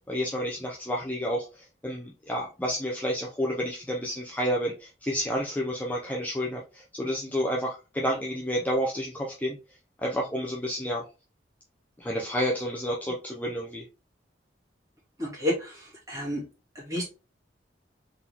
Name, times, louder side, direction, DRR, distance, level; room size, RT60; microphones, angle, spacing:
voice 1, 0.1-9.6 10.0-11.0 12.0-13.8, equal, 10° left, -1 dB, 0.6 m, -30 dB
voice 2, 15.2-16.5 16.8-17.0, left 1 dB, 20° right, -5 dB, 2.2 m, -31 dB
4.0 x 3.7 x 2.9 m, 0.30 s
head